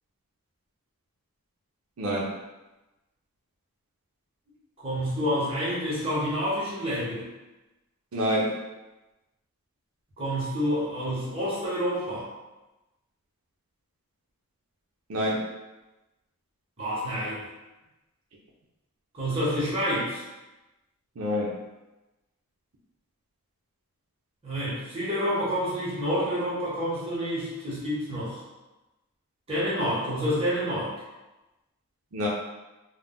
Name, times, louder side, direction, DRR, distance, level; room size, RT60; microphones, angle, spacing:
voice 1, 2.0-2.4 8.1-8.6 15.1-15.5 21.2-21.5 32.1-32.3, equal, 75° right, -4 dB, 0.5 m, -27 dB
voice 2, 4.8-7.3 10.2-12.3 16.8-17.4 19.1-20.2 24.4-28.4 29.5-30.9, equal, 25° right, -8 dB, 1.0 m, -28 dB
2.4 x 2.1 x 3.7 m, 1.0 s
head